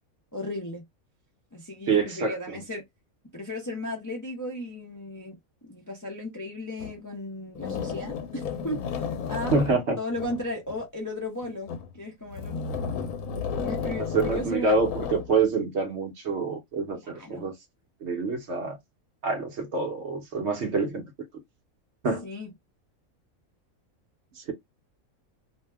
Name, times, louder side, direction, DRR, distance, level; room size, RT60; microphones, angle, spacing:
voice 1, 0.3-0.8 1.5-2.8 3.3-5.4 5.6-9.6 10.0-12.6 13.6-14.8 17.0-17.5 22.2-22.5, left 1 dB, 20° left, 0.4 m, -35 dB
voice 2, 1.9-2.4 9.5-10.0 14.1-17.5 18.0-18.8 19.2-21.0 22.0-22.3 24.4-24.5, right 4 dB, 55° right, 0.9 m, -26 dB
sound 1, 6.8-6.9 7.6-10.8 11.4-11.9 12.3-15.3, left 6 dB, 85° left, 1.1 m, -33 dB
2.7 x 2.2 x 3.3 m
omnidirectional pair, 1.5 m